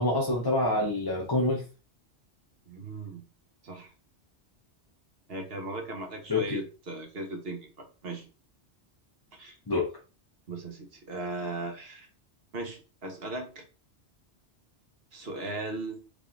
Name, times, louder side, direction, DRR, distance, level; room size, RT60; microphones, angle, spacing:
voice 1, 0.0-1.7 6.3-6.6 9.7-9.9, left 2 dB, 25° left, -2 dB, 0.8 m, -26 dB
voice 2, 2.7-3.2 3.6-3.9 5.3-8.3 9.3-9.6 10.5-12.1 12.5-13.7 15.1-16.0, right 2 dB, 60° right, 4 dB, 1.2 m, -37 dB
5.0 x 2.7 x 3.7 m, 0.33 s
omnidirectional pair, 1.2 m